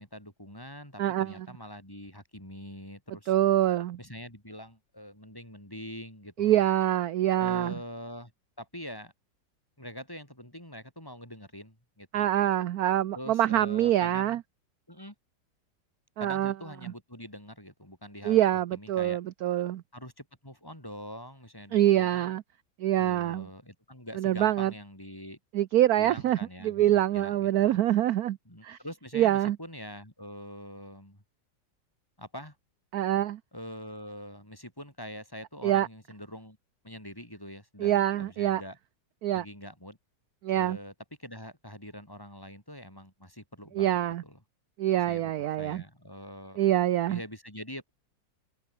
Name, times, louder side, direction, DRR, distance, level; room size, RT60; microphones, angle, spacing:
voice 1, 0.0-3.3 4.0-6.6 7.3-8.3 8.6-9.1 9.8-12.3 13.1-14.4 14.9-15.1 16.2-18.4 18.7-19.2 19.9-22.3 23.0-25.4 26.0-27.7 28.4-31.2 32.2-32.6 33.5-36.6 36.8-38.8 39.3-40.0 40.5-40.9 41.2-44.0 44.2-44.4 45.1-45.3 45.6-47.9, equal, 10° left, 6.6 m, -44 dB
voice 2, 1.0-1.4 3.3-4.0 6.4-7.7 12.1-14.4 16.2-16.5 18.2-19.8 21.7-22.4 22.8-23.5 24.2-24.7 25.5-26.4 26.6-28.4 28.6-28.8 29.1-29.6 32.9-33.4 35.6-35.9 37.8-38.6 39.2-39.4 40.4-40.8 43.7-44.2 44.8-45.8 46.6-47.2, right 13 dB, 65° right, 1.1 m, -25 dB
open air
omnidirectional pair, 2.0 m